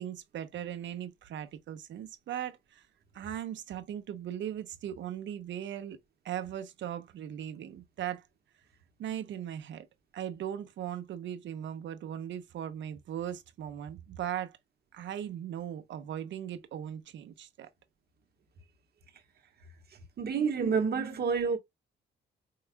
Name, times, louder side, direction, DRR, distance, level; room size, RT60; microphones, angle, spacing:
voice 1, 0.0-2.8 3.1-8.3 9.0-9.9 10.1-14.6 14.9-17.7, right 10 dB, 70° right, 0.8 m, -38 dB
voice 2, 20.2-21.6, right 5 dB, 55° right, 1.2 m, -28 dB
4.7 x 3.2 x 2.2 m
cardioid pair, 90°, 20 cm